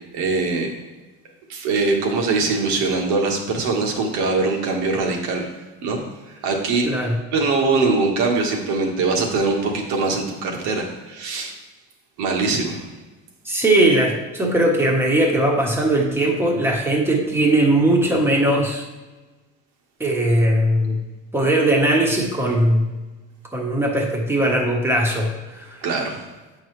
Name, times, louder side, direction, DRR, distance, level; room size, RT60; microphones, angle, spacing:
voice 1, 0.1-0.7 1.5-5.5 5.8-6.0 6.4-6.9 7.3-11.5 12.2-12.9 25.8-26.2, right 3 dB, 70° right, 1 dB, 1.5 m, -22 dB
voice 2, 6.8-7.2 13.4-18.8 20.0-21.0 21.3-22.9 23.5-25.8, right 1 dB, 10° right, -1 dB, 1.2 m, -19 dB
8.3 x 5.6 x 3.2 m, 1.2 s
cardioid pair, 140°, 30 cm